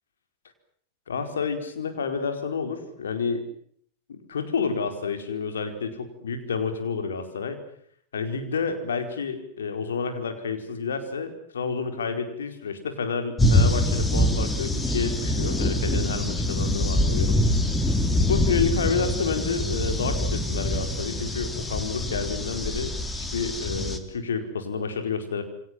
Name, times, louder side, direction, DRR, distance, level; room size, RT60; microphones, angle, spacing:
voice 1, 1.1-3.4 4.1-7.6 8.1-17.4 18.1-25.4, left 5 dB, 65° left, 7 dB, 4.7 m, -29 dB
sound 1, 13.4-24.0, left 1 dB, 10° left, 3.1 m, -24 dB
28.5 x 24.5 x 7.8 m, 0.63 s
figure-of-eight pair, 90°, 0 cm